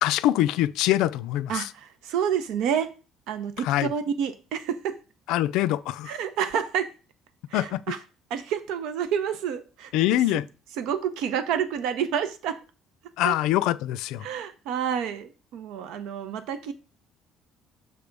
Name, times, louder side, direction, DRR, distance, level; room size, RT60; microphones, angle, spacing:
voice 1, 0.0-1.7 3.6-3.9 5.3-6.2 7.5-7.9 9.9-10.5 13.2-14.3, left 14 dB, 85° left, 0.3 m, -24 dB
voice 2, 1.5-2.9 3.3-5.0 6.1-6.9 7.5-8.0 8.3-9.9 10.8-12.6 13.2-13.3 14.2-16.7, right 8 dB, 75° right, 0.7 m, -29 dB
6.8 x 3.4 x 5.2 m
cardioid pair, 180°, 0 cm